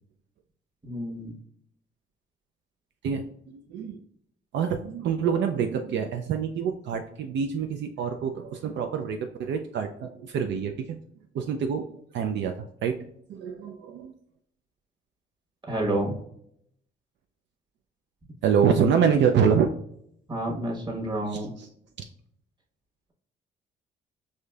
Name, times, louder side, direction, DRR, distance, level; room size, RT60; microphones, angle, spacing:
voice 1, 0.8-1.4 15.7-16.2 20.3-21.5, right 1 dB, 20° right, -1 dB, 1.2 m, -29 dB
voice 2, 3.5-4.0 4.5-11.0 11.3-11.9 12.1-12.9 13.3-14.1 18.4-19.7, right 7 dB, 65° right, 5 dB, 0.4 m, -26 dB
4.9 x 2.7 x 2.3 m, 0.70 s
cardioid pair, 90°, 20 cm